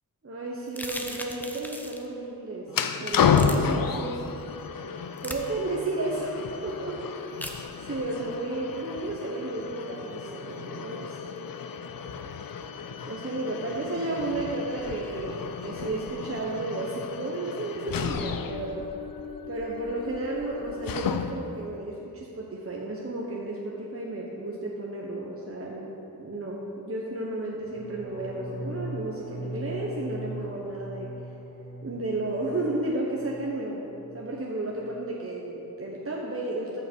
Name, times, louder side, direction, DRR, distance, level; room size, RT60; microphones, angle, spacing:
voice 1, 0.2-4.2 5.2-7.0 7.3-11.3 13.1-18.8 19.5-25.9 26.2-31.1 31.8-33.8 34.1-36.8, right 2 dB, 40° right, -3 dB, 1.1 m, -33 dB
sound 1, 0.7-2.1 3.3-3.6 5.2-5.4 7.4-7.6, equal, 5° left, 0.9 m, -37 dB
sound 2, 2.7-21.6, left 6 dB, 70° left, 0.6 m, -32 dB
sound 3, 27.6-33.5 33.8-34.3 34.6-35.0, right 1 dB, 30° left, 2.0 m, -40 dB
14.5 x 5.8 x 4.6 m, 2.8 s
wide cardioid pair, 65°, 35 cm